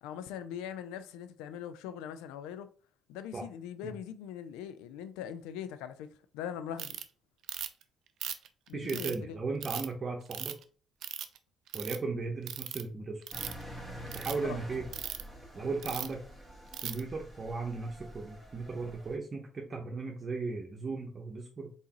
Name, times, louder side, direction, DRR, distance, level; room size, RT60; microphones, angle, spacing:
voice 1, 0.0-2.7 3.1-6.1 6.3-7.0 8.7-9.3 14.4-14.6, left 9 dB, 85° left, 0.4 m, -41 dB
Ratchet pawl, 6.8-7.0 7.5-7.8 8.2-9.2 9.6-9.9 10.3-10.6 11.0-11.4 11.7-12.0 12.5-12.8 13.2-13.6 14.1-14.3 14.9-15.2 15.8-16.1 16.7-17.0, right 10 dB, 70° right, 0.4 m, -38 dB
voice 2, 8.7-10.5 11.7-13.2 14.1-14.9 15.5-16.2 16.8-21.7, right 3 dB, 40° right, 0.9 m, -36 dB
Engine, 13.3-19.1, equal, 20° left, 1.8 m, -47 dB
4.0 x 3.8 x 2.9 m
supercardioid pair, 60°, 0 cm